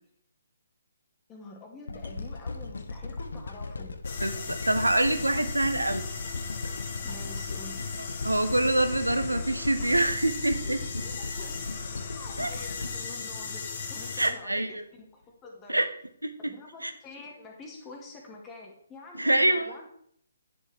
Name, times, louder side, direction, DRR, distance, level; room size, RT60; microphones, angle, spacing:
voice 1, 1.3-4.0 7.0-7.8 10.6-11.6 12.2-14.8 15.1-15.8 16.5-19.9, left 3 dB, 15° left, 0 dB, 1.9 m, -46 dB
sound 1, 1.9-14.1 14.6-14.7, left 3 dB, 70° left, 0.8 m, -37 dB
sound 2, 4.0-14.3, left 5 dB, 45° left, 1.4 m, -38 dB
voice 2, 4.2-6.0 8.0-10.8 12.4-12.5 14.2-14.7 15.7-15.9 16.2-16.3 16.8-16.9 19.1-19.7, right 1 dB, 90° right, 9 dB, 1.0 m, -25 dB
9.6 x 6.8 x 3.4 m, 0.67 s
figure-of-eight pair, 140°, 0 cm